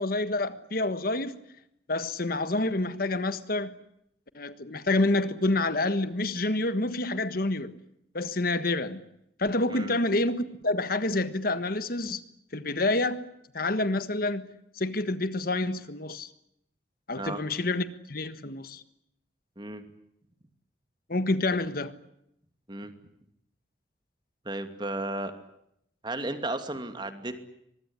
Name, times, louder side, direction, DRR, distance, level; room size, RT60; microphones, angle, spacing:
voice 1, 0.0-1.4 1.9-3.7 4.3-7.7 8.1-9.1 9.4-12.2 12.5-13.2 13.5-14.5 14.7-16.3 17.1-18.8 21.1-21.9, left 2 dB, 55° left, 1.5 m, -28 dB
voice 2, 24.4-25.3 26.0-27.4, right 2 dB, 25° right, 2.7 m, -34 dB
24.0 x 21.5 x 9.8 m
head